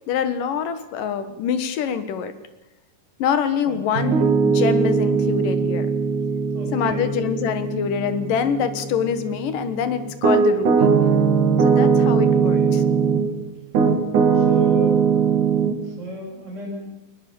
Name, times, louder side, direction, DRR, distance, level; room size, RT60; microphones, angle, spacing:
voice 1, 0.1-2.3 3.2-5.9 6.7-10.9 11.6-12.8, left 7 dB, 75° left, 11 dB, 2.9 m, -25 dB
voice 2, 3.6-4.1 6.5-7.2 12.2-12.8 13.5-13.8 14.3-15.0 15.8-16.9, right 1 dB, 20° right, -1 dB, 7.5 m, -35 dB
Piano, 4.0-13.3 13.7-15.7, right 6 dB, 65° right, 3.4 m, -20 dB
21.5 x 20.0 x 7.0 m, 0.96 s
omnidirectional pair, 4.0 m